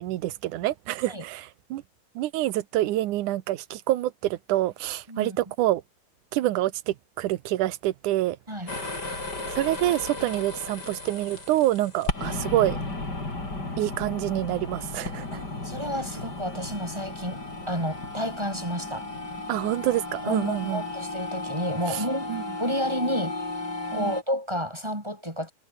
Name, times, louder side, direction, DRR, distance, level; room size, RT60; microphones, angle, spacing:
voice 1, 0.0-1.8 2.2-5.8 6.3-8.4 8.8-8.9 9.5-12.8 13.8-15.4 19.5-20.8 21.9-22.0 22.3-22.4 23.9-24.2, right 15 dB, 75° right, 2.5 m, -27 dB
sound 1, 8.7-24.2, left 2 dB, 30° left, 6.4 m, -34 dB
voice 2, 15.3-17.4 17.7-19.1 20.3-22.3 22.6-23.4 23.9-25.5, equal, 10° right, 4.2 m, -30 dB
omnidirectional pair, 3.7 m